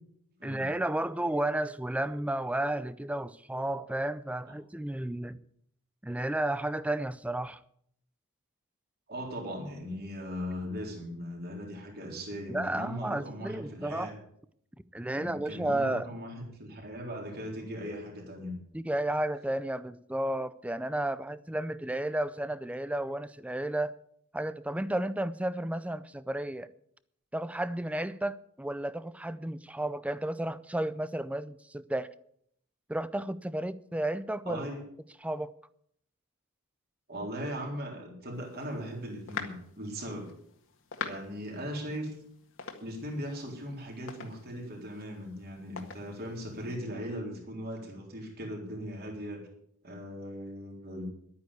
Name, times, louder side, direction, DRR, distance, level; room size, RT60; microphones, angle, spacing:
voice 1, 0.4-5.4 6.0-7.6 12.5-14.1 14.9-16.1 18.7-23.9 24.3-26.7 27.3-32.1 32.9-34.7 35.2-35.5, right 1 dB, 5° right, 0.4 m, -32 dB
voice 2, 9.1-14.2 15.1-18.5 34.5-34.8 37.1-40.3 41.0-42.2 42.8-49.4 49.8-51.0, equal, 45° right, 3.8 m, -39 dB
sound 1, 38.3-46.8, left 5 dB, 60° left, 1.8 m, -45 dB
12.0 x 9.5 x 8.2 m
head